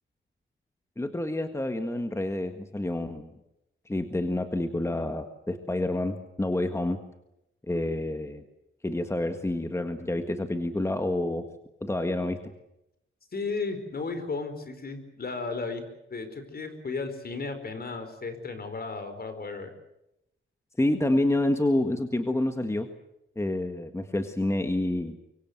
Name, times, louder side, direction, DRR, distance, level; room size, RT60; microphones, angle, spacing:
voice 1, 1.0-3.3 3.9-7.0 7.7-8.4 8.8-11.4 11.8-12.4 20.8-22.9 23.3-25.1, left 1 dB, 15° left, 7 dB, 1.7 m, -28 dB
voice 2, 13.3-15.8 16.1-19.7, left 4 dB, 50° left, 9 dB, 4.6 m, -34 dB
25.0 x 24.0 x 8.0 m, 0.84 s
wide cardioid pair, 145°, 21 cm